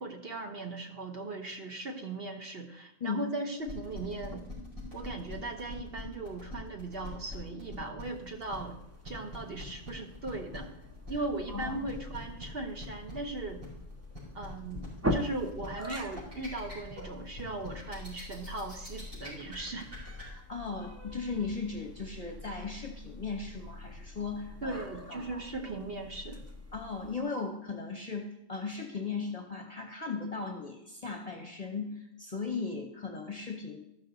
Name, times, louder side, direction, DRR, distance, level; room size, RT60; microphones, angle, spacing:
voice 1, 0.0-4.5 4.9-8.8 9.0-10.7 11.1-13.6 14.3-19.9 24.6-26.4, right 2 dB, 50° right, 3 dB, 1.1 m, -38 dB
sound 1, 3.6-20.2, left 1 dB, 80° right, 4.8 m, -44 dB
sound 2, 8.0-27.2, equal, 25° right, 0.3 m, -43 dB
voice 2, 11.5-11.8 20.2-24.8 25.1-25.4 26.7-33.8, left 4 dB, 35° left, 3 dB, 0.8 m, -37 dB
14.0 x 5.8 x 3.9 m, 0.86 s
omnidirectional pair, 1.4 m